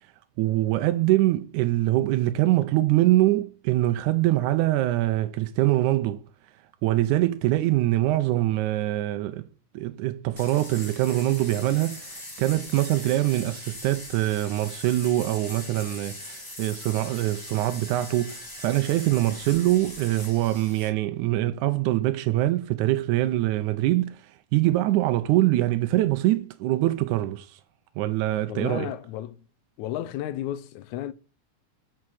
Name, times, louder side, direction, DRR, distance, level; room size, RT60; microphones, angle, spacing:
voice 1, 0.4-6.2 6.8-9.5 9.7-27.6 28.0-28.9, right 16 dB, 85° right, 2.1 m, -24 dB
sound 1, 10.4-20.9, left 1 dB, 25° left, 0.4 m, -41 dB
voice 2, 28.5-29.4 29.8-31.1, left 12 dB, 80° left, 2.0 m, -33 dB
6.3 x 5.7 x 6.2 m
omnidirectional pair, 3.5 m